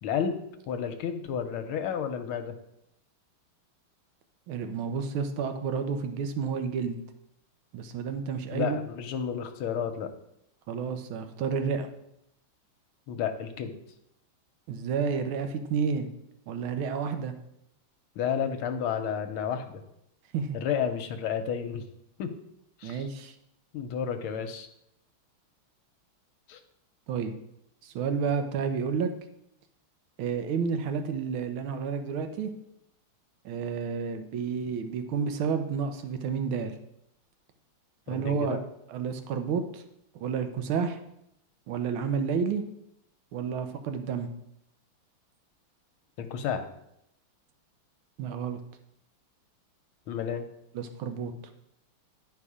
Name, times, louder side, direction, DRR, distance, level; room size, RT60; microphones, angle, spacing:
voice 1, 0.0-0.3 0.7-2.5 8.5-10.1 13.1-13.7 18.2-19.6 20.5-21.8 22.2-22.3 22.8-23.0 23.7-24.7 26.5-26.6 38.1-38.6 46.2-46.6 50.1-50.4, left 7 dB, 85° left, 7 dB, 1.6 m, -31 dB
voice 2, 4.5-7.0 7.7-8.8 10.7-11.9 14.7-16.1 16.5-17.3 20.3-20.6 22.8-23.3 27.1-27.3 27.8-29.1 30.2-32.5 33.4-36.8 38.1-38.6 38.9-39.8 40.1-41.0 41.7-42.6 43.3-44.3 48.2-48.6 50.7-51.3, right 6 dB, 75° right, 8 dB, 1.6 m, -30 dB
10.5 x 4.2 x 4.9 m, 0.81 s
omnidirectional pair, 2.3 m